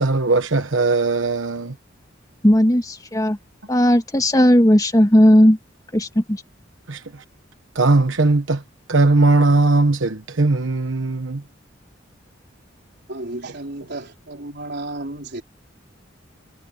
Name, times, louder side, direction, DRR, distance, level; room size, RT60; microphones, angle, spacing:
voice 1, 0.0-1.8 6.9-7.2 7.7-8.6 8.9-11.4, right 3 dB, 75° right, 1.1 m, -19 dB
voice 2, 2.4-3.4 3.7-5.6 5.9-6.4, equal, 20° left, 1.8 m, -15 dB
voice 3, 13.1-15.4, right 2 dB, 60° right, 4.2 m, -33 dB
head